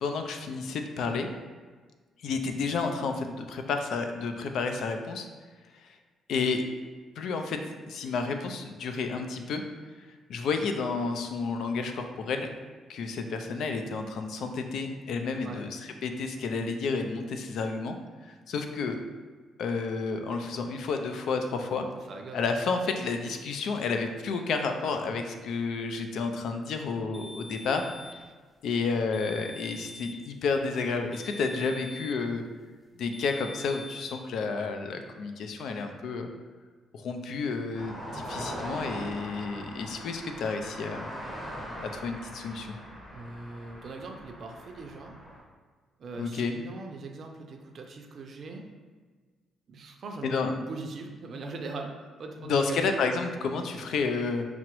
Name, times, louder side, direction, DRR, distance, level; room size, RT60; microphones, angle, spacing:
voice 1, 0.0-1.3 2.2-5.3 5.8-6.0 6.3-6.6 7.2-7.6 7.9-9.6 10.3-12.5 12.9-18.0 18.2-19.0 19.6-21.9 22.3-27.9 28.6-32.4 33.0-36.3 36.9-41.1 41.8-42.8 46.2-46.5 50.2-50.7 52.4-54.4, left 4 dB, 75° left, 6 dB, 0.4 m, -31 dB
voice 2, 15.4-15.7 22.1-22.4 43.1-45.1 46.0-48.7 49.7-51.9 52.2-52.8, right 3 dB, 55° right, 2 dB, 0.4 m, -41 dB
sound 1, 27.1-28.3 29.1-30.3 31.1-32.3 33.1-34.2, left 2 dB, ahead, 0.5 m, -45 dB
sound 2, 37.7-45.4, equal, 20° left, 1.2 m, -41 dB
5.7 x 2.0 x 3.0 m, 1.4 s
cardioid pair, 90°, 0 cm